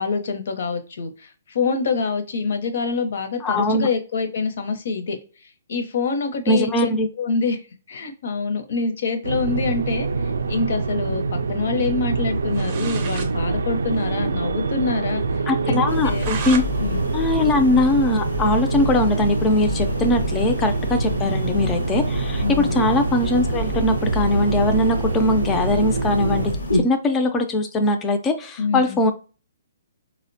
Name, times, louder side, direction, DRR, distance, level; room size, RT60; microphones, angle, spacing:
voice 1, 0.0-5.2 5.7-6.9 7.2-7.6 7.9-15.8 16.0-16.3 16.8-17.1 21.0-21.3 22.4-22.8 28.6-29.0, left 4 dB, 65° left, 0.7 m, -26 dB
voice 2, 3.4-3.9 6.5-7.1 15.5-16.6 17.1-29.1, left 2 dB, 15° left, 0.4 m, -21 dB
sound 1, 9.2-26.5, right 4 dB, 80° right, 0.3 m, -25 dB
sound 2, 12.5-13.3 13.7-13.8 14.0-14.1 14.5-14.6 15.0-15.1 15.7-16.7 17.1-18.4, right 6 dB, 35° right, 0.5 m, -34 dB
sound 3, 15.9-26.8, left 2 dB, 85° left, 1.0 m, -28 dB
4.1 x 2.1 x 2.6 m
hypercardioid pair, 150°, 0 cm